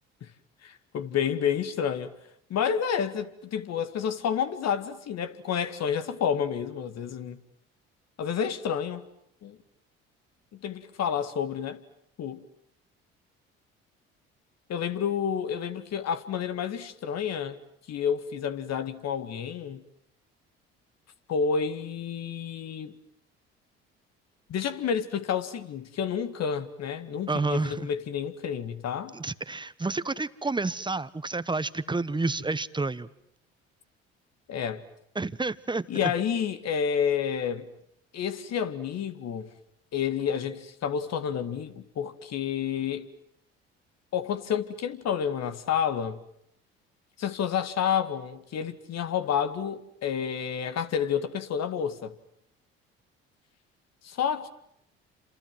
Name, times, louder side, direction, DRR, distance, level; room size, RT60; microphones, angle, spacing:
voice 1, 0.6-2.1 2.5-7.4 8.2-9.0 9.4-9.6 10.6-11.8 12.2-12.4 14.7-17.6 17.9-19.8 21.3-22.9 24.5-29.1 34.5-34.8 35.9-37.7 38.1-39.5 39.9-43.1 44.1-46.2 47.2-52.1 54.0-54.5, left 7 dB, 60° left, 2.1 m, -29 dB
voice 2, 27.3-27.9 29.1-33.1 35.1-36.1, right 3 dB, 15° right, 1.2 m, -30 dB
28.5 x 27.0 x 7.7 m
hypercardioid pair, 60°, 30 cm